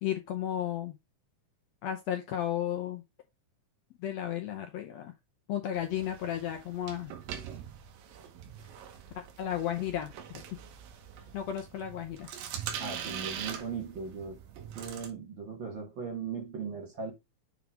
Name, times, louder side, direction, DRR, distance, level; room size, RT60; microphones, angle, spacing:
voice 1, 0.0-1.0 1.8-3.0 4.0-5.1 5.5-7.1 9.2-10.4 11.3-12.3, left 11 dB, 80° left, 1.5 m, -34 dB
sound 1, 5.7-15.1, right 9 dB, 85° right, 2.9 m, -43 dB
voice 2, 12.8-14.4 14.7-17.1, right 5 dB, 60° right, 1.2 m, -38 dB
7.3 x 3.7 x 3.5 m
omnidirectional pair, 4.0 m